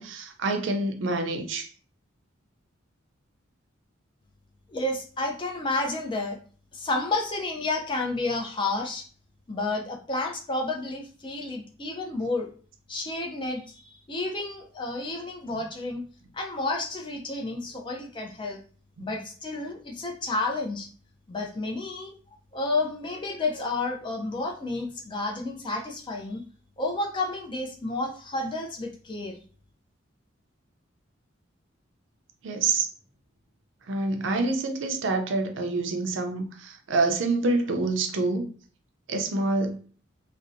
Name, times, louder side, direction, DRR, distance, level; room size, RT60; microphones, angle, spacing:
voice 1, 0.0-1.7 19.0-19.1 32.4-32.9 33.9-38.5 39.1-39.8, right 3 dB, 65° right, 5 dB, 0.4 m, -27 dB
voice 2, 4.7-6.4 6.7-9.1 9.5-12.5 12.9-16.0 16.3-18.6 19.0-20.9 21.3-22.1 22.5-26.4 26.8-29.4, left 2 dB, 25° left, 2 dB, 0.4 m, -31 dB
2.6 x 2.0 x 2.5 m, 0.41 s
head